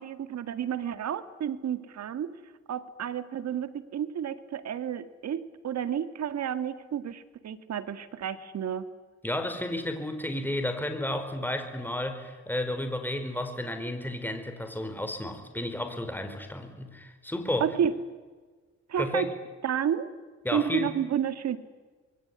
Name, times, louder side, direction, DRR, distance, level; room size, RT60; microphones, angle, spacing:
voice 1, 0.0-2.3 2.7-8.9 17.6-18.0 18.9-19.3 19.6-20.1 20.5-21.6, right 9 dB, 60° right, 12 dB, 2.0 m, -31 dB
voice 2, 9.2-17.7 19.0-19.3 20.4-20.9, left 1 dB, 5° left, 7 dB, 4.8 m, -32 dB
25.0 x 22.5 x 9.7 m, 1.4 s
cardioid pair, 90°, 30 cm